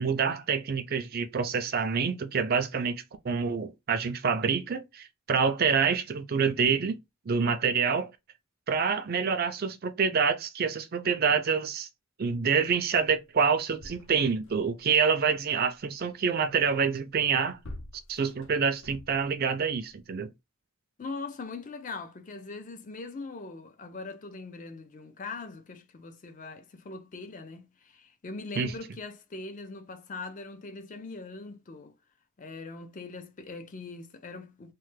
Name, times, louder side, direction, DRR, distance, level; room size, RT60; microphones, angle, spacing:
voice 1, 0.0-7.0 7.3-8.1 8.7-11.9 12.2-17.6 18.1-20.3 28.6-28.7, right 6 dB, 45° right, 0.4 m, -27 dB
sound 1, 13.1-13.2 13.5-14.8 17.1-19.5 20.2-20.3, left 1 dB, 70° left, 0.7 m, -47 dB
voice 2, 21.0-31.9 32.4-34.7, left 3 dB, 35° left, 0.4 m, -41 dB
3.1 x 2.1 x 3.2 m
head